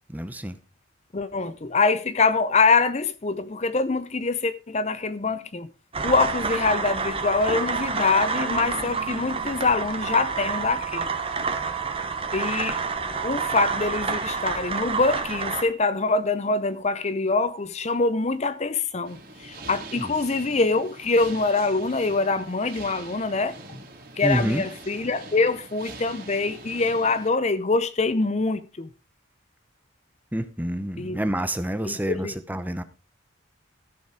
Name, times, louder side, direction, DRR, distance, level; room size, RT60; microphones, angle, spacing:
voice 1, 0.1-0.6 20.0-20.1 24.2-24.6 30.3-32.8, right 1 dB, 10° right, 0.7 m, -28 dB
voice 2, 1.1-5.7 6.0-11.1 12.3-12.8 13.2-23.8 24.2-28.9 31.0-31.2 31.8-32.4, left 3 dB, 35° left, 0.6 m, -24 dB
sound 1, 5.9-15.6, right 4 dB, 25° right, 1.2 m, -29 dB
Wind instrument woodwind instrument, 8.2-14.4, right 11 dB, 80° right, 1.9 m, -38 dB
sound 2, 19.0-27.3, right 3 dB, 45° right, 2.9 m, -43 dB
14.0 x 7.0 x 4.9 m
head